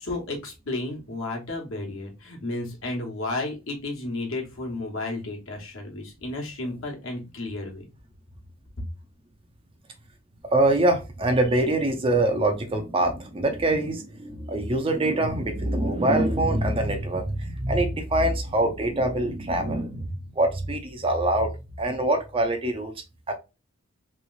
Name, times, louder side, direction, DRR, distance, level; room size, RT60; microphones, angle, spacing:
voice 1, 0.0-7.8, left 2 dB, 60° left, 1.1 m, -32 dB
voice 2, 10.5-21.5 21.8-22.9 23.3-23.4, right 1 dB, 25° right, 0.5 m, -24 dB
3.1 x 3.0 x 2.3 m
head